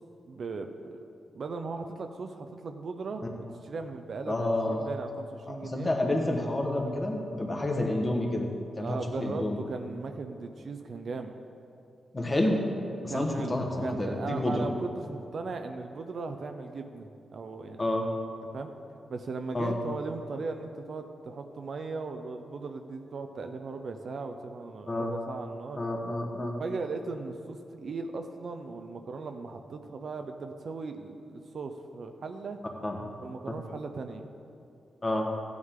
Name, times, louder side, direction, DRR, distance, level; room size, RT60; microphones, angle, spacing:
voice 1, 0.3-1.0 1.3-3.3 3.6-5.9 8.8-11.3 13.1-17.9 18.5-18.7 19.1-25.8 26.6-32.6 33.2-34.3, right 4 dB, 50° right, 6 dB, 0.6 m, -38 dB
voice 2, 4.3-4.8 5.5-8.5 8.8-9.6 12.1-12.6 13.0-14.7 17.8-18.1 19.5-19.8 24.9-25.1 25.8-26.6 32.8-33.0 33.5-33.6 35.0-35.3, left 1 dB, 20° left, 1 dB, 1.2 m, -29 dB
15.0 x 9.5 x 3.7 m, 2.5 s
wide cardioid pair, 170°, 0 cm